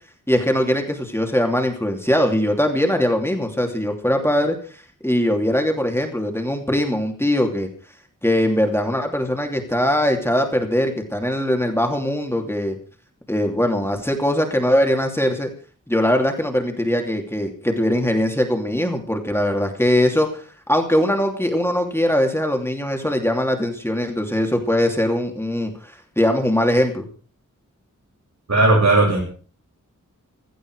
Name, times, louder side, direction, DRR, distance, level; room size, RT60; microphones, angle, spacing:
voice 1, 0.3-4.6 5.0-7.7 8.2-12.8 13.3-15.5 15.9-20.4 20.7-27.1, left 1 dB, 10° left, 3 dB, 2.9 m, -21 dB
voice 2, 28.5-29.2, right 2 dB, 60° right, -3 dB, 7.7 m, -15 dB
16.5 x 14.5 x 4.8 m, 0.40 s
wide cardioid pair, 100°, 31 cm